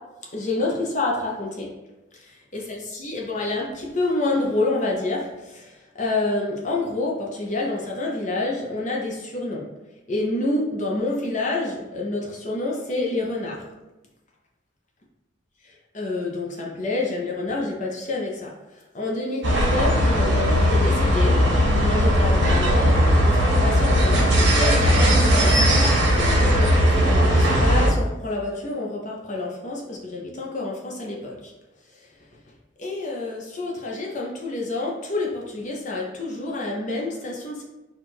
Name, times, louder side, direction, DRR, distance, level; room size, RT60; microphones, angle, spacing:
voice 1, 0.3-1.7 2.2-9.6 10.1-13.6 15.9-18.5 18.9-21.4 21.7-22.9 23.2-25.6 26.1-31.5 32.8-37.6, left 2 dB, 40° left, -2 dB, 0.7 m, -28 dB
sound 1, 19.4-27.9, equal, 75° right, 1.3 m, -18 dB
4.3 x 2.5 x 4.6 m, 1.0 s
head